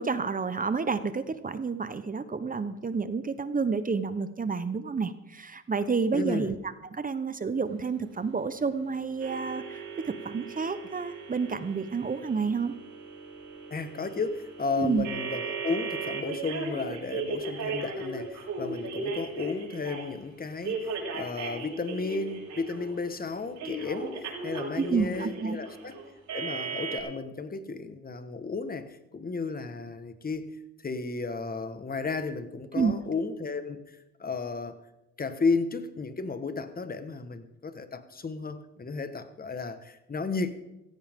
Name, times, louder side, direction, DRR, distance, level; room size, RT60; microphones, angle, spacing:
voice 1, 0.0-6.6 6.9-12.7 14.8-15.1 24.8-25.6 32.7-32.9, right 5 dB, 30° right, 12 dB, 1.0 m, -29 dB
voice 2, 6.1-6.5 13.7-26.0 26.3-34.7 35.2-40.5, left 4 dB, 30° left, 10 dB, 1.5 m, -33 dB
sound 1, 9.2-20.1 20.6-23.0 23.6-27.0, right 4 dB, 75° right, 5.9 m, -37 dB
17.0 x 15.0 x 3.7 m, 0.96 s
cardioid pair, 90°, 30 cm